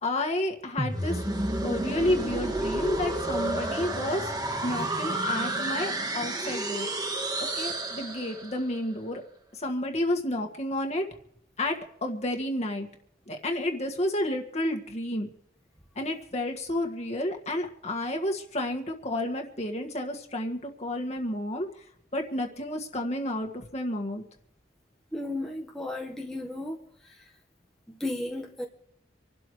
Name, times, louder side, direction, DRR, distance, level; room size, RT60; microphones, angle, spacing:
voice 1, 0.0-4.3 4.6-6.9 7.4-9.2 9.5-11.0 11.6-12.9 13.3-15.3 16.0-21.7 22.1-24.2, left 1 dB, 35° left, 2 dB, 1.9 m, -31 dB
sound 1, 0.8-8.7, right 1 dB, 20° right, 1.4 m, -30 dB
voice 2, 25.1-26.8 28.0-28.7, left 1 dB, 5° left, -2 dB, 1.4 m, -34 dB
26.5 x 12.5 x 3.3 m, 0.71 s
head